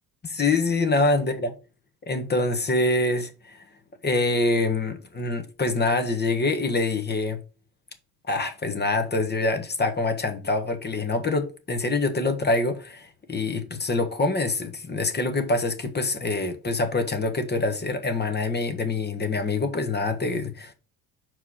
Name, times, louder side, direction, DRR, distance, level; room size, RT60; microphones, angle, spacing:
voice 1, 0.2-1.5 2.0-3.6 4.0-7.4 8.3-20.7, left 2 dB, 25° left, 1.5 m, -25 dB
5.6 x 4.8 x 6.3 m
supercardioid pair, 100°, 42 cm